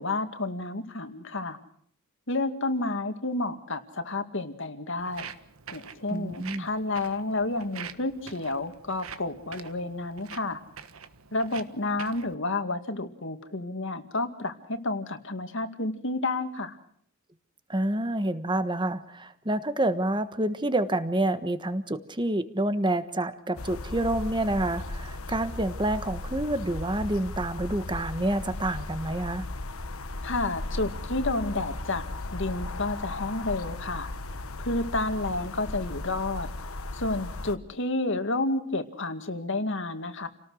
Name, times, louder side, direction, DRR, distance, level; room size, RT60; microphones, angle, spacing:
voice 1, 0.0-1.6 2.3-5.3 5.7-10.6 11.3-16.8 30.2-32.0 32.3-34.1 34.6-36.5 36.9-40.3, left 2 dB, 60° left, 8 dB, 2.2 m, -30 dB
Walk footsteps, 5.0-12.3, right 7 dB, 80° right, 1.4 m, -45 dB
voice 2, 6.1-6.7 17.7-29.5, right 1 dB, 20° right, 11 dB, 1.4 m, -28 dB
sound 1, 23.6-37.6, left 2 dB, 80° left, 1.4 m, -36 dB
29.5 x 18.5 x 6.4 m, 0.63 s
head